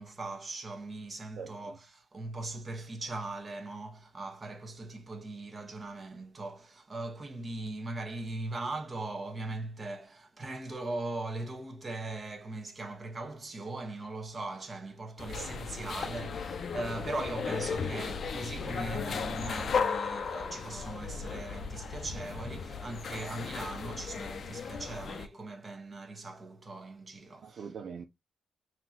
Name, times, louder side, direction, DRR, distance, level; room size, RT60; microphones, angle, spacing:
voice 1, 0.0-27.7, right 2 dB, 30° right, 1.3 m, -40 dB
voice 2, 1.4-1.8 15.4-15.7 27.4-28.0, right 6 dB, 60° right, 0.6 m, -43 dB
sound 1, 15.2-25.3, left 5 dB, 50° left, 0.6 m, -36 dB
5.9 x 2.9 x 2.4 m
cardioid pair, 105°, 0 cm